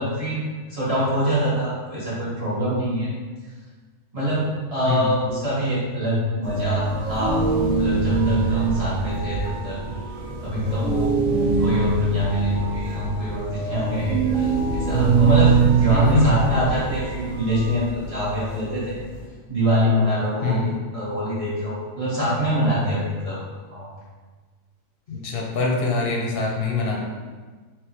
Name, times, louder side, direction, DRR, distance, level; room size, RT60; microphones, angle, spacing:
voice 1, 0.0-3.1 4.1-7.4 7.8-9.8 10.4-11.2 11.6-19.0 19.5-23.4 23.7-23.9, equal, 25° right, -9 dB, 1.3 m, -24 dB
sound 1, 6.4-19.3, right 4 dB, 75° right, 1.0 m, -23 dB
voice 2, 15.9-16.3 20.4-20.7 25.1-27.0, left 3 dB, 50° left, -1 dB, 0.8 m, -23 dB
3.4 x 3.1 x 3.1 m, 1.4 s
omnidirectional pair, 1.4 m